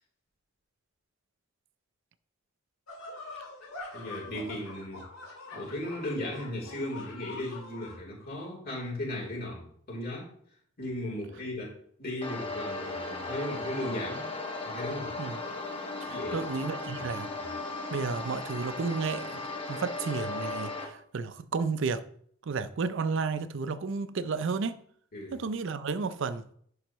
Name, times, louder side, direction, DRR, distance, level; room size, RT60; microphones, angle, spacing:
sound 1, 2.9-8.0, left 3 dB, 90° left, 2.5 m, -44 dB
voice 1, 3.9-5.1 5.5-10.3 10.8-14.2 14.6-15.2 16.0-16.4 17.3-17.5 25.1-25.4, left 1 dB, 50° left, 3.1 m, -36 dB
sound 2, 12.2-20.9, left 3 dB, 25° left, 1.2 m, -36 dB
voice 2, 16.0-17.3 17.9-22.0 22.4-24.8 25.3-26.5, right 4 dB, 65° right, 0.5 m, -32 dB
10.5 x 5.5 x 3.0 m
head